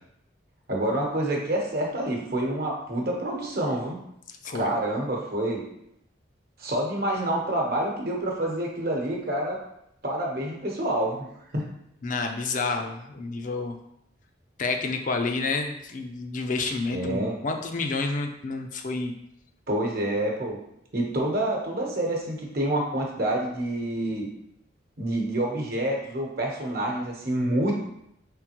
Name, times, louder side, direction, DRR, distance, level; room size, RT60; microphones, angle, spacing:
voice 1, 0.7-4.0 4.5-5.6 6.6-9.6 10.0-11.3 11.5-11.6 16.9-17.4 19.7-20.6 20.9-24.3 25.0-27.8, right 1 dB, 55° right, -1 dB, 1.0 m, -27 dB
voice 2, 4.4-4.7 12.0-13.8 14.6-19.1, left 3 dB, 45° left, 5 dB, 0.4 m, -29 dB
4.8 x 3.6 x 2.9 m, 0.78 s
head